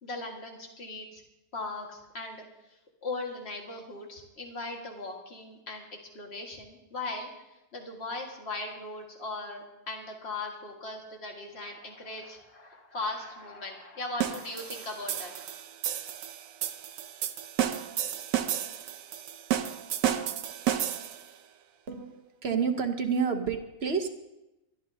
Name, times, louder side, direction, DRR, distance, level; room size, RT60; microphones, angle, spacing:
voice 1, 0.0-1.2 1.5-5.9 6.1-7.3 7.7-15.6, left 2 dB, 45° left, 1 dB, 2.1 m, -39 dB
sound 1, 14.2-21.3, right 10 dB, 70° right, 1.1 m, -32 dB
voice 2, 21.9-24.1, right 6 dB, 50° right, 6 dB, 1.2 m, -29 dB
22.0 x 12.5 x 2.8 m, 0.95 s
omnidirectional pair, 1.6 m